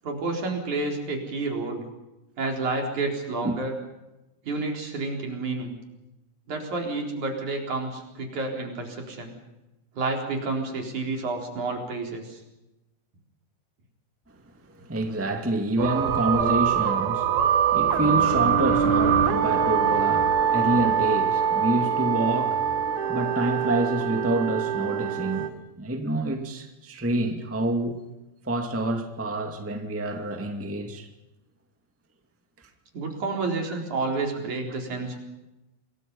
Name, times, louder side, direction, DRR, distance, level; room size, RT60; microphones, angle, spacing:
voice 1, 0.0-1.8 2.4-3.7 4.5-5.8 6.5-9.3 10.0-12.4 32.9-35.2, right 3 dB, 45° right, 5.3 m, -30 dB
voice 2, 14.8-22.6 23.1-28.0 28.4-31.1 33.7-33.8, right 1 dB, 15° right, 0.5 m, -27 dB
sound 1, 15.8-25.5, right 8 dB, 60° right, 2.3 m, -23 dB
27.5 x 23.0 x 5.5 m
omnidirectional pair, 5.0 m